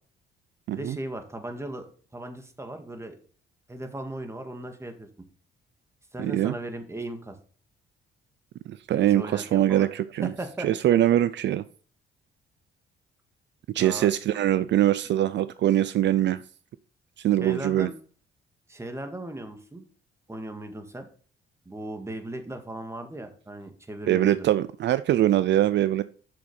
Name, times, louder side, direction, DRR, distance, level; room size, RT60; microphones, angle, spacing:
voice 1, 0.7-3.2 3.7-5.1 6.1-7.4 8.9-9.9 10.2-10.7 13.8-14.2 14.6-14.7 17.4-17.9 18.7-19.8 20.3-21.1 21.7-24.4, right 1 dB, 15° right, 6 dB, 1.9 m, -37 dB
voice 2, 6.2-6.5 8.7-10.3 10.6-11.6 13.7-16.4 17.2-17.9 24.1-26.0, right 12 dB, 65° right, 15 dB, 0.5 m, -23 dB
7.6 x 6.3 x 5.5 m, 0.43 s
cardioid pair, 90°, 20 cm